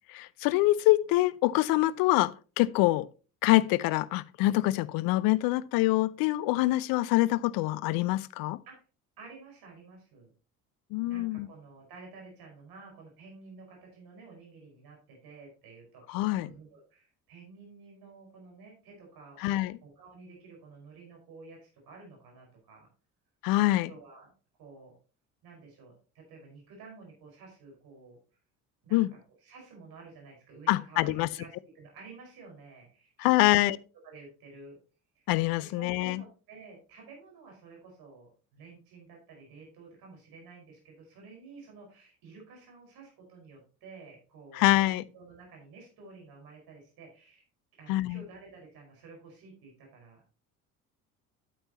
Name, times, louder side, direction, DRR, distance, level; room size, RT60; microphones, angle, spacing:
voice 1, 0.1-3.1 3.4-8.6 10.9-11.5 16.1-16.5 19.4-19.8 23.4-23.9 28.9-29.1 30.7-31.3 33.2-33.8 35.3-36.2 44.5-45.0 47.9-48.2, left 18 dB, 50° left, 0.7 m, -25 dB
voice 2, 9.2-10.3 11.0-22.9 23.7-24.3 24.6-24.9 25.4-28.2 28.8-29.0 29.4-33.7 34.0-34.8 35.2-35.3 35.6-47.4 47.8-50.3, right 4 dB, 55° right, 5.2 m, -51 dB
10.0 x 8.8 x 2.9 m
figure-of-eight pair, 60°, 44 cm